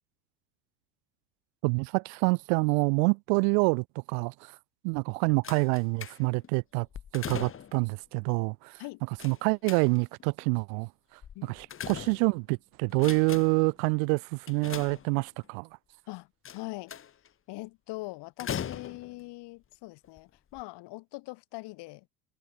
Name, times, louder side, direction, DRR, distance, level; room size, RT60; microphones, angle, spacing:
voice 1, 1.6-4.6 4.8-6.9 7.1-8.8 9.2-15.7, right 40 dB or more, 60° right, 0.7 m, -27 dB
sound 1, 5.4-6.5 6.9-7.9 9.2-10.2 11.2-12.5 12.9-13.7 14.5-15.5 16.5-17.3 18.4-19.2 20.0-20.2 20.5-20.6, left 8 dB, 25° left, 2.1 m, -40 dB
voice 2, 16.1-16.9 17.5-22.1, left 22 dB, 55° left, 5.4 m, -42 dB
supercardioid pair, 120°, 49 cm